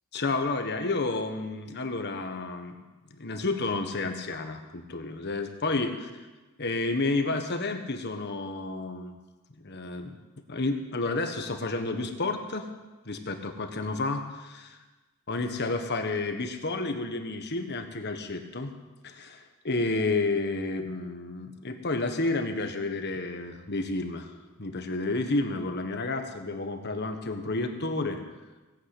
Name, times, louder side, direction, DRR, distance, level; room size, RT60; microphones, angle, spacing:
voice 1, 0.1-2.8 3.2-5.9 6.6-9.2 9.6-10.2 10.5-12.7 13.0-14.8 15.3-18.7 19.0-24.3 24.6-28.2, left 3 dB, 50° left, 6 dB, 1.4 m, -30 dB
18.0 x 8.7 x 8.4 m, 1.2 s
head